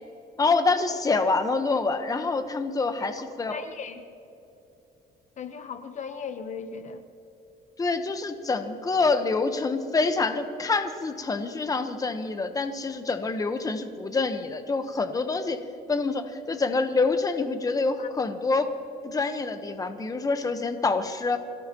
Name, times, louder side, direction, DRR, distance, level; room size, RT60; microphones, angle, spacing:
voice 1, 0.4-3.6 7.8-15.6 15.9-18.7 19.0-21.4, left 3 dB, 20° left, 8 dB, 1.1 m, -26 dB
voice 2, 3.5-4.0 5.4-7.0 18.0-18.1, left 6 dB, 45° left, 9 dB, 1.0 m, -37 dB
26.0 x 17.0 x 3.0 m, 2.9 s
cardioid pair, 110°, 17 cm